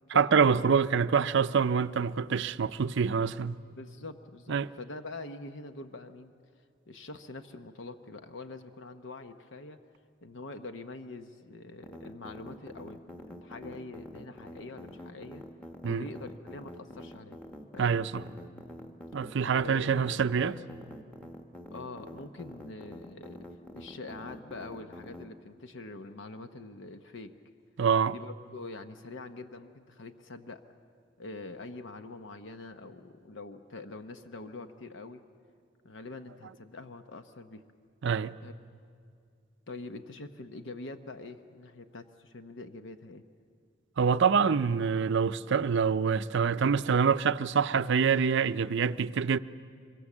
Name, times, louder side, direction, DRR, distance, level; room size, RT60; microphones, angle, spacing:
voice 1, 0.1-3.5 4.5-4.7 15.8-16.1 17.8-18.2 19.1-20.6 27.8-28.1 38.0-38.3 44.0-49.4, right 6 dB, 65° right, 0.5 m, -26 dB
voice 2, 3.8-6.3 6.9-9.8 10.2-15.4 15.8-17.4 17.7-17.9 19.3-20.0 21.7-23.4 23.7-27.3 28.1-30.6 31.2-35.2 35.8-37.6 38.4-38.5 39.7-43.2, left 3 dB, 65° left, 0.9 m, -44 dB
sound 1, 11.8-25.2, left 1 dB, 5° left, 1.2 m, -46 dB
25.0 x 23.5 x 7.3 m
head